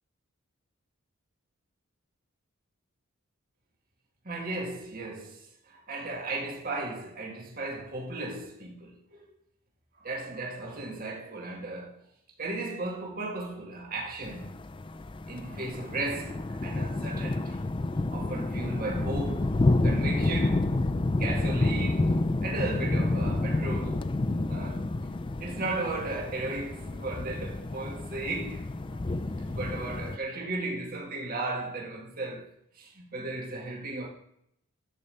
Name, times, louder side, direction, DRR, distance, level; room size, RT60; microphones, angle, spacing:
voice 1, 4.2-9.3 9.9-12.0 12.4-14.5 15.3-17.6 18.1-19.6 19.8-20.7 21.2-22.2 22.4-24.1 24.5-24.8 25.4-29.0 29.5-32.5 32.8-34.1, right 2 dB, 40° right, 2.0 m, -35 dB
sound 1, 14.2-30.2, left 2 dB, 25° left, 0.4 m, -29 dB
11.0 x 5.2 x 6.8 m
head